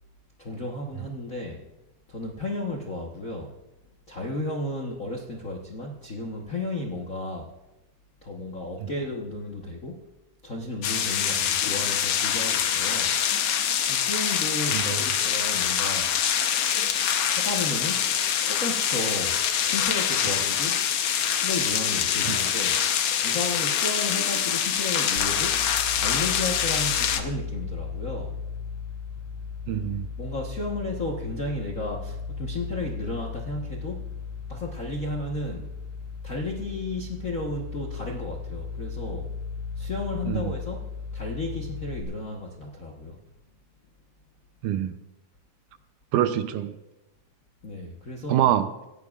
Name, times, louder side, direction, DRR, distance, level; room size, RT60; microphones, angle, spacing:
voice 1, 0.4-1.6 2.1-3.5 4.1-7.5 8.2-10.0 10.4-13.2 13.9-16.1 17.3-18.1 18.5-19.4 19.6-20.8 21.3-22.8 23.2-25.6 26.0-28.3 30.2-34.1 34.5-35.7 36.2-39.3 39.7-43.2 47.6-48.5, left 2 dB, 90° left, 0.7 m, -33 dB
sound 1, 10.8-27.2, left 8 dB, 65° left, 1.5 m, -25 dB
sound 2, 25.2-42.0, left 5 dB, 5° right, 6.2 m, -36 dB
voice 2, 29.7-30.1 40.3-40.5 44.6-44.9 46.1-46.7 48.3-48.7, right 11 dB, 80° right, 2.2 m, -24 dB
26.5 x 16.0 x 2.5 m
omnidirectional pair, 3.6 m